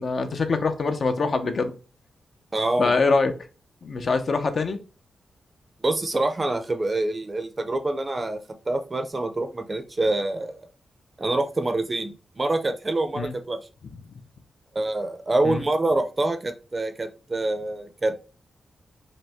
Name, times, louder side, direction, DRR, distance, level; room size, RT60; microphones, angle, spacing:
voice 1, 0.0-1.7 2.8-3.3 3.8-4.8 13.1-13.3 15.4-15.6, left 4 dB, 50° left, 0.6 m, -24 dB
voice 2, 2.5-2.9 5.8-8.4 8.7-10.6 11.2-13.6 14.7-18.1, right 2 dB, 25° right, 0.6 m, -26 dB
5.2 x 2.1 x 3.5 m
wide cardioid pair, 125°, 0 cm